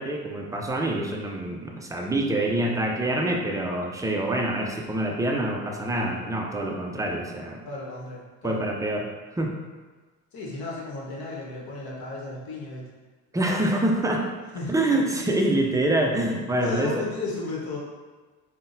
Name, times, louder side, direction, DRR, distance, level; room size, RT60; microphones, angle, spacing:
voice 1, 0.0-7.6 8.4-9.1 9.4-9.5 13.3-14.2 14.7-16.9, right 1 dB, 10° right, 1 dB, 0.3 m, -26 dB
voice 2, 7.7-8.6 10.3-12.9 14.5-15.3 16.6-17.8, left 3 dB, 60° left, -4 dB, 1.1 m, -34 dB
3.8 x 2.2 x 2.6 m, 1.3 s
supercardioid pair, 85°, 40 cm